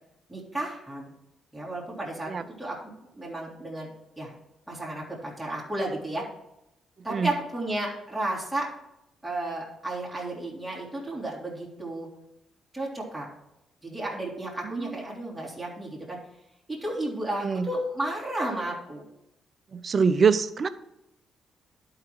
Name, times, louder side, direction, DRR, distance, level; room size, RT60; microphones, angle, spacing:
voice 1, 0.3-1.1 1.5-2.3 2.6-3.9 4.2-4.3 4.7-6.2 7.0-8.7 9.2-12.1 12.7-13.3 13.8-16.2 16.7-19.1, right 1 dB, ahead, -6 dB, 3.3 m, -33 dB
voice 2, 14.6-15.0 17.4-17.7 19.7-20.7, right 5 dB, 40° right, 12 dB, 0.6 m, -24 dB
11.5 x 4.9 x 4.7 m, 0.85 s
cardioid pair, 90°, 0 cm